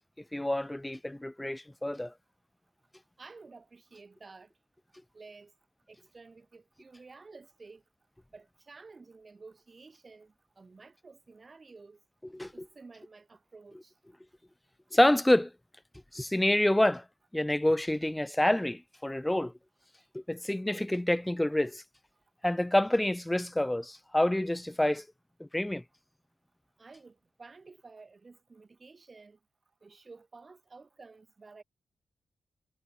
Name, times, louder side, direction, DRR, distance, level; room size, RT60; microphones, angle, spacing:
voice 1, 0.3-2.1 12.3-12.5 14.9-15.5 16.1-17.0 17.3-19.5 20.1-21.8 22.4-25.0 25.4-25.8, left 1 dB, 10° left, 1.0 m, -27 dB
voice 2, 3.2-4.5 5.1-5.5 5.9-7.8 8.3-12.0 12.5-13.9 26.8-29.4 29.8-31.6, right 4 dB, 40° right, 5.7 m, -52 dB
supercardioid pair, 50°, 0 cm